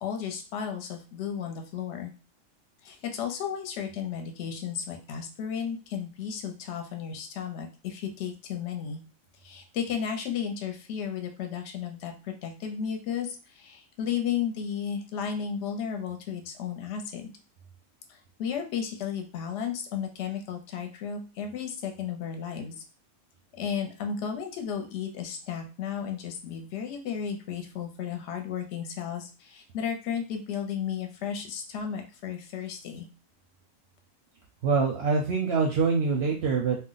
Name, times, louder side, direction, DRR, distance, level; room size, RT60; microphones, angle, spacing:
voice 1, 0.0-2.1 2.8-9.0 9.4-17.3 18.1-22.7 23.6-33.1, left 7 dB, 65° left, 4 dB, 0.8 m, -34 dB
voice 2, 34.6-36.8, right 4 dB, 65° right, 0 dB, 0.7 m, -25 dB
2.4 x 2.1 x 3.8 m, 0.35 s
omnidirectional pair, 1.4 m